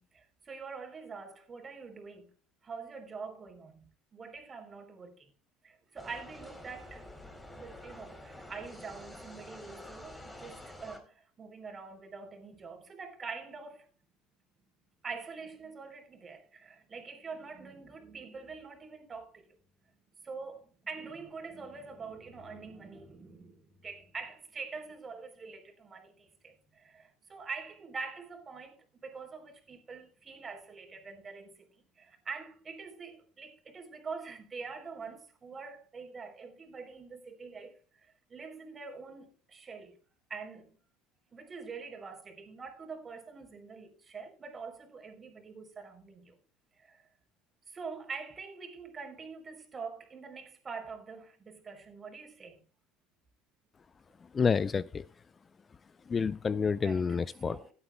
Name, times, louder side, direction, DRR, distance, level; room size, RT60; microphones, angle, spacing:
voice 1, 0.0-2.3 2.6-5.3 5.6-7.1 7.5-13.9 15.0-19.5 20.2-31.7 32.0-40.0 40.3-40.8 41.3-46.4 46.7-47.1 47.7-52.6 56.8-57.7, right 5 dB, 30° right, 3.8 m, -45 dB
sound 1, 6.0-11.0, left 1 dB, 15° left, 3.5 m, -48 dB
voice 2, 54.3-55.1 56.1-57.6, left 5 dB, 30° left, 0.4 m, -29 dB
16.0 x 11.5 x 2.3 m
hypercardioid pair, 65°, 0 cm